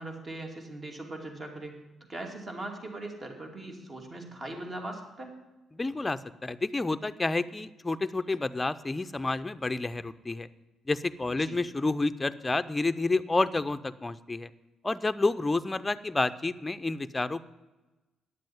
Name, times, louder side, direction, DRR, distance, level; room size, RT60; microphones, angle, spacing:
voice 1, 0.0-1.8 2.1-5.4 11.4-11.6, right 2 dB, 35° right, 3 dB, 2.6 m, -40 dB
voice 2, 5.7-10.5 10.9-14.5 14.8-17.4, left 3 dB, 20° left, 12 dB, 0.5 m, -29 dB
9.7 x 7.6 x 9.2 m, 1.1 s
cardioid pair, 90°, 0 cm